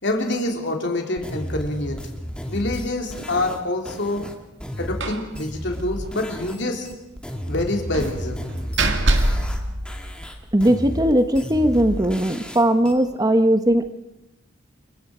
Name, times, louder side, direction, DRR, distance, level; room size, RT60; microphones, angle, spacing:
voice 1, 0.0-2.1 2.5-4.3 4.8-6.9 7.5-8.4, left 1 dB, 65° left, 3 dB, 3.3 m, -26 dB
sound 1, 1.2-6.6 6.8-9.6 9.8-12.9, equal, 5° left, 2.1 m, -33 dB
Slam, 5.0-5.3 5.6-5.7 6.0-6.2 7.9-10.5, right 1 dB, 65° right, 2.2 m, -24 dB
voice 2, 10.5-13.9, right 1 dB, 20° right, 9 dB, 1.0 m, -19 dB
28.0 x 23.5 x 5.0 m, 0.92 s
head